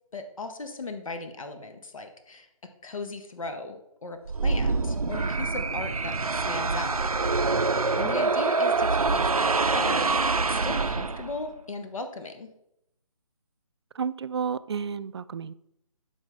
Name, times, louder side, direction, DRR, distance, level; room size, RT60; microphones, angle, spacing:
voice 1, 0.1-2.5 2.8-7.0 8.0-12.5, left 3 dB, 70° left, 1.1 m, -37 dB
sound 1, 4.3-11.5, right 3 dB, 90° right, 0.6 m, -25 dB
voice 2, 14.0-15.5, right 6 dB, 50° right, 0.4 m, -31 dB
11.5 x 5.2 x 3.3 m
figure-of-eight pair, 150°, 18 cm